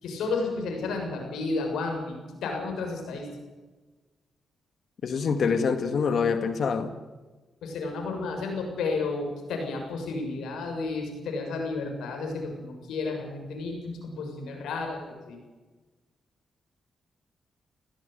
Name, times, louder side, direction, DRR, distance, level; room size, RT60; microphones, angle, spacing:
voice 1, 0.0-3.3 7.6-15.4, left 3 dB, 85° left, 3 dB, 7.1 m, -32 dB
voice 2, 5.0-6.9, left 5 dB, 65° left, 9 dB, 1.9 m, -25 dB
18.5 x 17.0 x 9.3 m, 1.2 s
cardioid pair, 70°, 0 cm